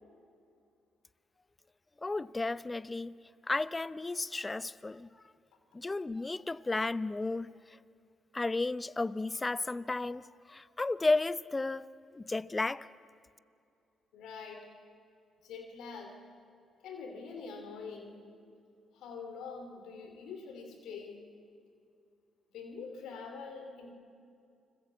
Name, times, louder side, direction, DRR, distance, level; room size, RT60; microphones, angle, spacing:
voice 1, 2.0-3.1 3.5-5.1 5.7-7.8 8.3-11.9 12.1-12.9, left 3 dB, 25° left, 0.7 m, -33 dB
voice 2, 14.1-14.7 15.4-16.1 16.8-18.2 18.9-21.3 22.5-23.9, left 5 dB, 75° left, 2.9 m, -44 dB
29.5 x 21.0 x 8.3 m
supercardioid pair, 50°, 0 cm